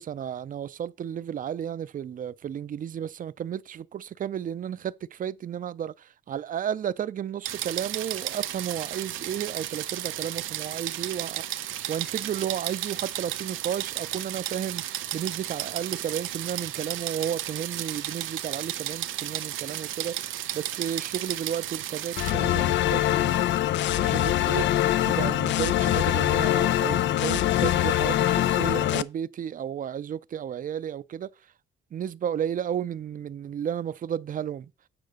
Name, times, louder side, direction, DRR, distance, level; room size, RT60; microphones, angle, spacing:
voice 1, 0.0-23.5 24.0-31.5 31.9-34.7, right 9 dB, 45° right, 0.5 m, -33 dB
sound 1, 7.4-22.3, right 13 dB, 85° right, 0.7 m, -33 dB
sound 2, 22.2-29.0, left 13 dB, 65° left, 0.5 m, -23 dB
8.7 x 3.8 x 6.3 m
cardioid pair, 90°, 20 cm